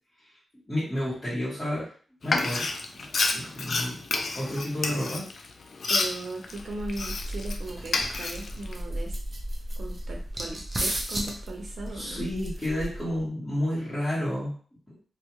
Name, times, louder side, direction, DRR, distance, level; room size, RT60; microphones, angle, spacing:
voice 1, 0.7-1.9 2.2-4.0 4.3-5.3 11.9-14.5, left 1 dB, 20° left, -11 dB, 1.4 m, -31 dB
Frying (food), 2.2-7.6 7.9-8.7, left 3 dB, 60° left, 0.4 m, -29 dB
voice 2, 5.9-9.2 9.8-12.3, right 2 dB, 70° right, 1 dB, 0.8 m, -38 dB
sound 1, 6.5-13.2, right 1 dB, 20° right, 0.6 m, -34 dB
2.7 x 2.4 x 3.0 m, 0.43 s
wide cardioid pair, 100°, 0 cm